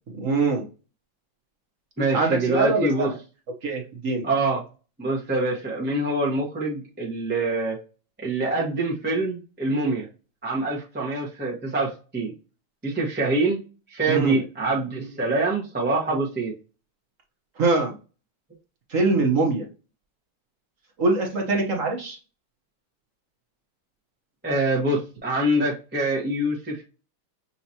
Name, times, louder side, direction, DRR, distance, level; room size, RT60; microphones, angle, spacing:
voice 1, 0.1-0.6 2.1-3.1 3.6-4.2 14.1-14.4 17.6-17.9 18.9-19.6 21.0-22.2, right 3 dB, 50° right, 1 dB, 1.0 m, -23 dB
voice 2, 2.0-3.1 4.2-4.6 5.0-7.8 8.2-10.1 10.4-12.3 12.8-13.6 13.9-16.5 24.4-26.8, right 2 dB, 10° right, -4 dB, 0.6 m, -25 dB
5.7 x 2.9 x 2.7 m, 0.33 s
omnidirectional pair, 2.4 m